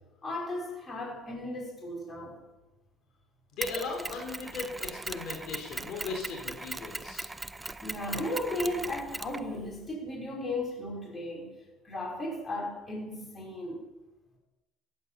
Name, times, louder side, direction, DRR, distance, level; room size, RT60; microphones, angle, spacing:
voice 1, 0.2-2.4 7.8-11.6 11.8-13.9, left 1 dB, 25° left, 5.3 m, -35 dB
voice 2, 3.5-7.3, left 4 dB, 65° left, 3.9 m, -37 dB
Mechanisms, 3.6-9.9, right 2 dB, 15° right, 0.6 m, -39 dB
16.5 x 9.8 x 6.9 m
cardioid pair, 115°, 0 cm